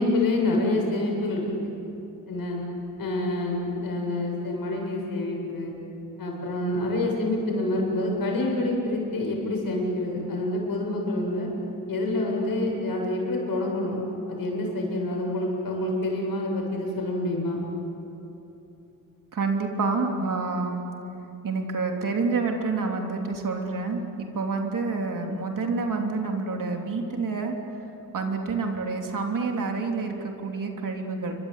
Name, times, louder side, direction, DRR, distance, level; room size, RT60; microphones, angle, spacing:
voice 1, 0.0-1.4 2.3-2.6 3.0-5.7 6.2-11.5 11.9-14.0 14.3-17.6, left 2 dB, 75° left, 0 dB, 7.8 m, -27 dB
voice 2, 19.3-20.9 21.4-27.6 28.1-31.4, right 4 dB, 65° right, 2 dB, 3.4 m, -28 dB
29.0 x 24.5 x 8.4 m, 2.9 s
cardioid pair, 100°, 35 cm